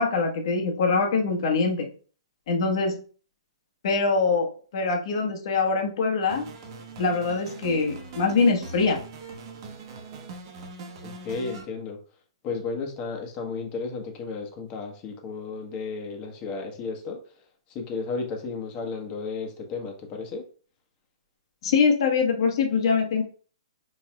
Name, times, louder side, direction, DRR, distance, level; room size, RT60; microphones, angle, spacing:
voice 1, 0.0-1.9 2.5-3.0 3.8-6.4 7.0-9.0 21.6-23.2, left 4 dB, 55° left, 3 dB, 1.2 m, -23 dB
sound 1, 6.3-11.6, right 4 dB, 45° right, 1.1 m, -41 dB
voice 2, 11.0-12.0 12.4-17.2 17.7-20.5, left 4 dB, 30° left, 2 dB, 1.2 m, -33 dB
4.6 x 4.5 x 2.3 m, 0.40 s
hypercardioid pair, 135°, 3 cm